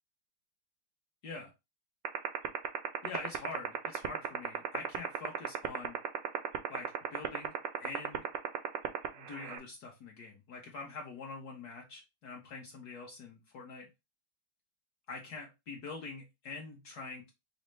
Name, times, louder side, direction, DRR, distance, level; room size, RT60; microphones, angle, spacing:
sound 1, 2.0-9.6, right 12 dB, 80° right, 0.7 m, -31 dB
voice 1, 3.0-6.0 6.7-7.5 7.8-8.3 9.1-13.9 15.1-17.3, left 4 dB, 65° left, 0 dB, 1.1 m, -45 dB
5.1 x 2.0 x 3.1 m, 0.23 s
omnidirectional pair, 2.0 m